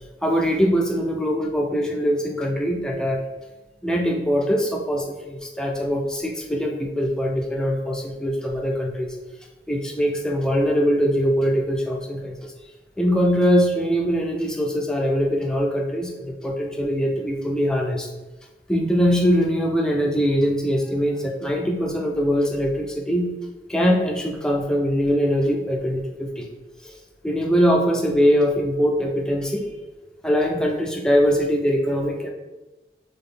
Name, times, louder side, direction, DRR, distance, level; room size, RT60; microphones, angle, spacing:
voice 1, 0.2-3.2 3.8-9.1 9.7-12.5 13.0-18.1 18.7-23.3 23.7-26.5 26.8-27.0 27.2-29.7 30.2-32.3, equal, 5° left, 0 dB, 0.5 m, -22 dB
3.9 x 3.5 x 3.8 m, 1.1 s
head